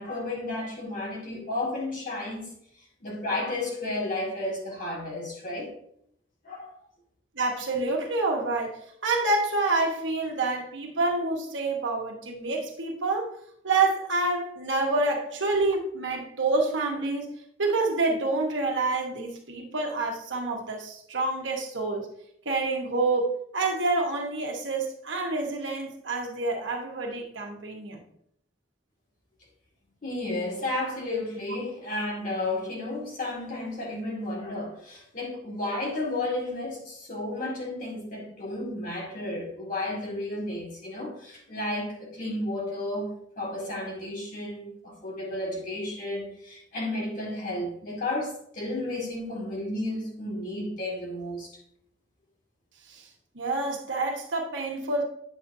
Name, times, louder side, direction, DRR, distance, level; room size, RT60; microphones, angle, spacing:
voice 1, 0.0-2.5 3.0-5.7 6.4-6.7 30.0-43.1 43.4-51.5, left 2 dB, 45° left, 2.2 m, -32 dB
voice 2, 7.4-13.3 13.6-17.3 17.6-22.1 22.4-28.0 52.9-53.1 53.3-55.0, right 3 dB, 80° right, 1.3 m, -27 dB
9.1 x 6.7 x 2.7 m
head